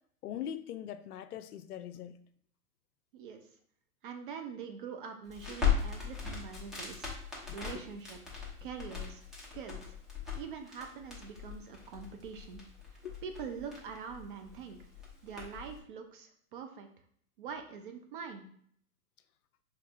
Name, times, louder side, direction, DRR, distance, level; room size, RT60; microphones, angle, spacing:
voice 1, 0.2-2.2 7.4-7.8 13.0-13.2, left 10 dB, 75° left, 11 dB, 0.5 m, -42 dB
voice 2, 3.1-3.5 4.0-9.2 9.5-9.9 10.4-12.6 12.9-14.8 15.2-16.9 17.4-18.5, right 6 dB, 35° right, 6 dB, 0.4 m, -44 dB
Crackle, 5.2-15.8, left 7 dB, ahead, 0.8 m, -38 dB
4.5 x 3.1 x 2.5 m, 0.63 s
hypercardioid pair, 120°, 46 cm